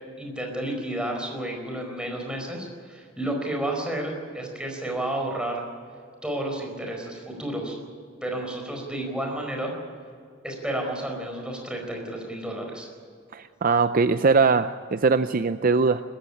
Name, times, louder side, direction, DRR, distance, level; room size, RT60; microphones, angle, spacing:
voice 1, 0.2-5.6 6.2-7.8 8.2-9.7 10.4-12.9, right 1 dB, 5° right, 1 dB, 4.6 m, -31 dB
voice 2, 13.3-16.0, right 4 dB, 45° right, 11 dB, 0.5 m, -21 dB
21.5 x 14.5 x 10.0 m, 2.2 s
head